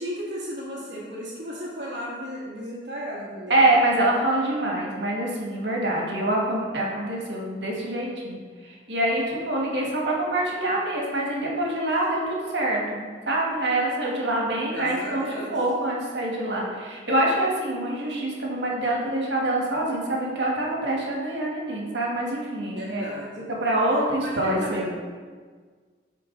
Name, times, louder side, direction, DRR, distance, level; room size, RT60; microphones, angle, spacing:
voice 1, 0.0-3.6 14.7-15.5 22.7-23.5 24.2-24.9, equal, 65° right, -9 dB, 1.4 m, -34 dB
voice 2, 3.5-15.3 15.5-23.1 23.6-24.9, right 1 dB, 85° right, -2 dB, 1.7 m, -25 dB
8.5 x 4.6 x 3.9 m, 1.5 s
head